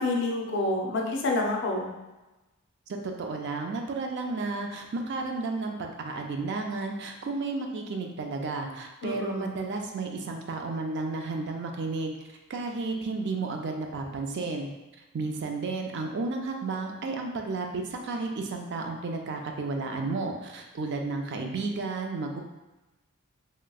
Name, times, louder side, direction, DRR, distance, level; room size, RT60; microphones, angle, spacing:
voice 1, 0.0-1.9 9.0-9.5, left 2 dB, 55° left, 0 dB, 0.5 m, -28 dB
voice 2, 2.9-12.2 12.5-14.7 15.1-22.4, right 3 dB, 55° right, 3 dB, 0.4 m, -32 dB
3.2 x 2.9 x 2.3 m, 1.1 s
head